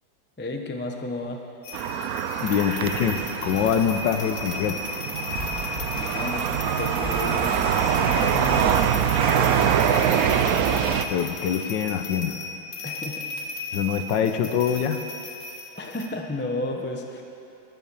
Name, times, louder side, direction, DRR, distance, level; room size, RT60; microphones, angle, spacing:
voice 1, 0.4-1.4 5.9-7.5 7.9-10.3 12.8-13.6 15.7-17.2, left 2 dB, 15° left, 2 dB, 0.4 m, -33 dB
sound 1, 1.6-16.1, left 3 dB, 50° left, 1.3 m, -35 dB
sound 2, 1.7-11.0, right 9 dB, 80° right, 0.8 m, -24 dB
voice 2, 2.4-4.8 11.1-12.4 13.7-15.0, left 8 dB, 70° left, 8 dB, 1.3 m, -24 dB
sound 3, 5.3-11.0, left 1 dB, 30° right, 5.0 m, -39 dB
21.5 x 7.9 x 7.0 m, 2.8 s
omnidirectional pair, 2.2 m